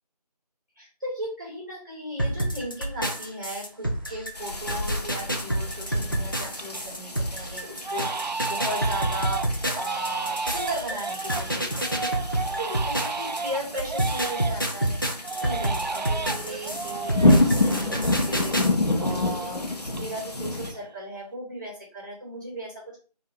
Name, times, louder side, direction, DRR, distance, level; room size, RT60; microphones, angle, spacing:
voice 1, 0.8-15.0 15.4-23.0, right 1 dB, 30° right, -1 dB, 1.7 m, -36 dB
sound 1, 2.2-13.4 13.8-18.7, right 1 dB, 30° left, 0.5 m, -29 dB
sound 2, 4.3-20.7, left 2 dB, 70° left, 1.0 m, -29 dB
Crying sobbing, 5.2-5.7 6.1-6.9 7.2-7.4 7.8-14.8 15.2-18.6 18.8-20.4 20.6-21.2, right 4 dB, 85° right, 0.5 m, -33 dB
4.5 x 2.8 x 3.3 m, 0.36 s
figure-of-eight pair, 170°, 21 cm